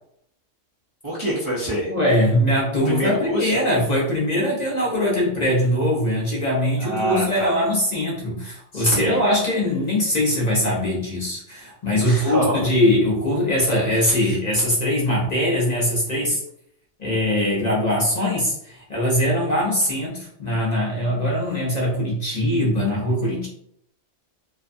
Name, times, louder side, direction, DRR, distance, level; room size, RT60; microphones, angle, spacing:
voice 1, 1.0-1.9 2.8-3.7 6.8-7.6 8.7-9.3 12.0-12.6 14.0-14.3, equal, 40° right, -8 dB, 0.4 m, -26 dB
voice 2, 1.9-16.4 17.0-23.5, left 1 dB, 40° left, -5 dB, 0.7 m, -21 dB
2.5 x 2.2 x 2.5 m, 0.72 s
omnidirectional pair, 1.3 m